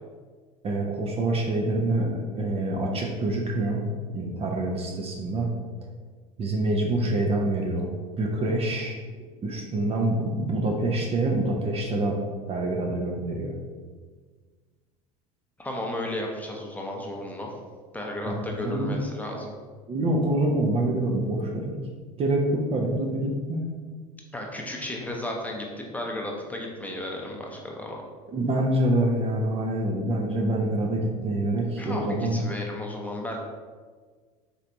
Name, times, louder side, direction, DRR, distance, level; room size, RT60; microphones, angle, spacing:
voice 1, 0.6-3.8 4.1-5.5 6.4-7.9 8.2-9.0 9.4-12.2 12.5-13.5 18.3-19.0 19.9-21.7 22.2-23.7 28.3-32.4, right 1 dB, 30° right, 0 dB, 0.6 m, -26 dB
voice 2, 15.6-17.5 17.9-19.5 24.3-28.0 31.8-33.4, left 1 dB, 10° left, -1 dB, 0.7 m, -34 dB
4.3 x 3.2 x 2.6 m, 1.5 s
hypercardioid pair, 80°, 19 cm